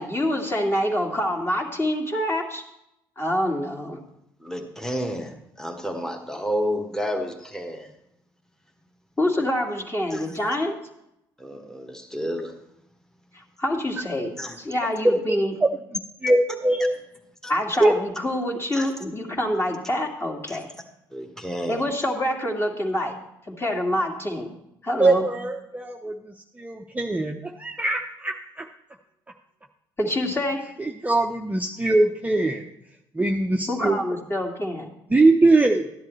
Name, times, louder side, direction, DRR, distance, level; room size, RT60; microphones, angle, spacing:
voice 1, 0.0-2.6 3.2-4.0 9.2-10.8 13.3-15.5 17.5-20.7 21.7-23.1 23.5-24.5 24.8-25.3 30.0-30.6 33.7-34.9, left 1 dB, 20° left, -1 dB, 2.2 m, -26 dB
voice 2, 4.4-7.9 10.1-10.3 11.4-12.5 14.4-14.5 16.8-16.9 17.4-17.5 18.7-18.9 21.1-21.8, equal, 5° left, 3 dB, 1.5 m, -30 dB
voice 3, 15.0-15.7 16.2-17.0 17.8-17.9 25.0-26.1 26.6-28.7 30.8-32.6 33.2-34.0 35.1-35.8, right 2 dB, 15° right, 2 dB, 0.7 m, -21 dB
13.0 x 10.5 x 3.2 m, 0.83 s
hypercardioid pair, 50°, 11 cm